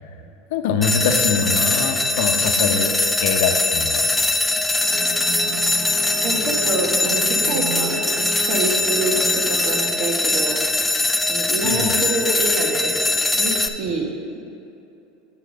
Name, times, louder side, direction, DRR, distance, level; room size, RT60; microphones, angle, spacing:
voice 1, 0.5-2.9 3.2-4.0 11.6-11.9, left 6 dB, 75° left, 5 dB, 0.7 m, -23 dB
sound 1, 0.8-13.7, left 2 dB, 5° left, 0.4 m, -21 dB
sound 2, 4.8-9.9, right 1 dB, 40° left, 1.5 m, -33 dB
voice 2, 6.2-10.6 11.3-12.9 13.4-14.1, right 2 dB, 45° right, 0 dB, 1.5 m, -26 dB
7.0 x 6.6 x 5.2 m, 2.7 s
supercardioid pair, 135°, 0 cm